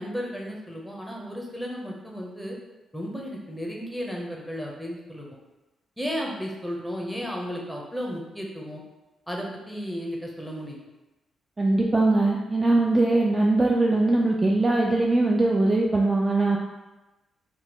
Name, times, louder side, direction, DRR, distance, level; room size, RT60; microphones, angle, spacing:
voice 1, 0.0-2.6 2.9-5.3 6.0-8.8 9.3-10.8, equal, ahead, -1 dB, 0.8 m, -34 dB
voice 2, 11.6-16.6, right 2 dB, 25° right, -1 dB, 0.3 m, -21 dB
2.9 x 2.2 x 3.0 m, 1.1 s
supercardioid pair, 50°, 0 cm